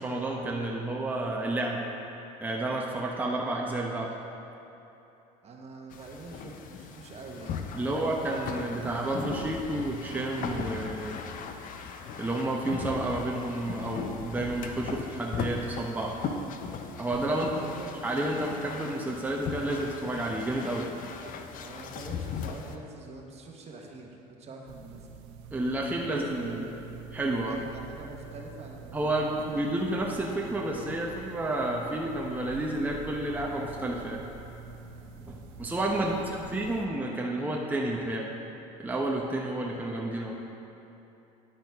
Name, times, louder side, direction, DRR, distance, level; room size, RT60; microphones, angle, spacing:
voice 1, 0.0-1.9 2.4-4.1 7.8-11.2 12.2-16.2 16.9-17.6 18.0-20.9 25.5-26.7 27.1-27.6 28.9-34.2 35.3-38.3 38.8-40.4, right 1 dB, 10° right, -2 dB, 0.9 m, -30 dB
voice 2, 5.4-8.1 17.3-18.2 21.6-25.1 25.9-26.8 27.4-29.7 36.0-36.3, right 3 dB, 40° right, 1 dB, 1.3 m, -45 dB
sound 1, 5.9-22.8, left 6 dB, 55° left, 0.7 m, -38 dB
sound 2, 24.7-36.9, right 6 dB, 80° right, 0.7 m, -47 dB
Thunder / Rain, 31.3-36.9, right 1 dB, 70° left, 1.7 m, -50 dB
9.9 x 8.6 x 3.6 m, 2.9 s
supercardioid pair, 90°, 17 cm